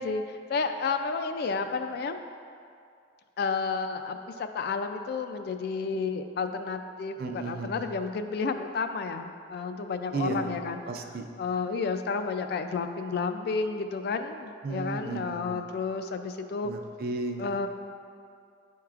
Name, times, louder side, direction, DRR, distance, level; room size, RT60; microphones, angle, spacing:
voice 1, 0.0-2.2 3.4-10.8 11.4-16.7 17.4-17.7, left 4 dB, 60° left, 7 dB, 0.3 m, -31 dB
voice 2, 7.2-7.8 10.1-10.5 10.9-11.3 14.6-15.7 16.6-17.5, right 3 dB, 55° right, 4 dB, 0.4 m, -34 dB
8.8 x 4.6 x 2.4 m, 2.4 s
head